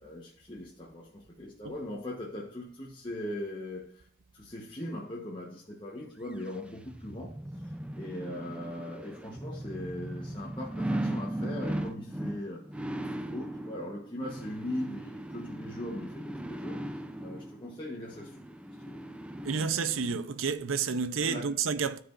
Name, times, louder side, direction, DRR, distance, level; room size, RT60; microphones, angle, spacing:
voice 1, 0.0-4.1 4.3-12.8 13.1-18.5 18.8-19.0 21.2-21.6, left 1 dB, 25° left, 1.0 m, -40 dB
sound 1, 6.3-20.2 20.6-20.7, right 1 dB, 5° right, 0.4 m, -38 dB
voice 2, 19.4-22.0, right 5 dB, 80° right, 0.6 m, -30 dB
13.5 x 4.9 x 2.5 m
head